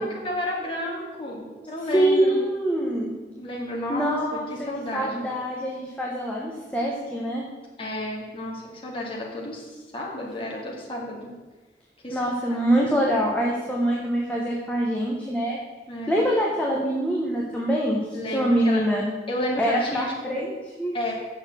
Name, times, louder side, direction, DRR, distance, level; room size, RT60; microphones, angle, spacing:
voice 1, 0.0-2.4 3.4-4.2 4.5-5.3 7.8-11.3 12.0-12.2 12.5-12.6 15.9-16.2 18.1-18.8 19.3-20.5 20.9-21.1, left 1 dB, 30° left, -3 dB, 2.2 m, -32 dB
voice 2, 1.9-3.1 3.9-4.5 4.9-7.5 12.1-15.6 16.1-18.1 18.3-19.0 19.6-21.1, right 1 dB, 10° left, -3 dB, 1.3 m, -24 dB
7.0 x 6.7 x 7.9 m, 1.2 s
head